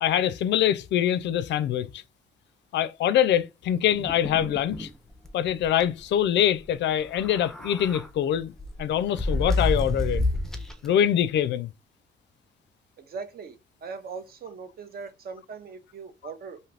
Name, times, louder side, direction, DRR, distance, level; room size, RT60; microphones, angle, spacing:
voice 1, 0.0-1.9 2.7-4.9 5.3-8.5 8.8-10.2 10.8-11.7, left 10 dB, 65° left, 0.4 m, -24 dB
sound 1, 3.9-4.9 5.2-5.3 5.6-5.8 7.0-8.1 8.6-10.9, left 2 dB, ahead, 0.5 m, -29 dB
voice 2, 13.0-16.6, right 5 dB, 50° right, 0.7 m, -40 dB
2.6 x 2.4 x 3.3 m
cardioid pair, 90°, 20 cm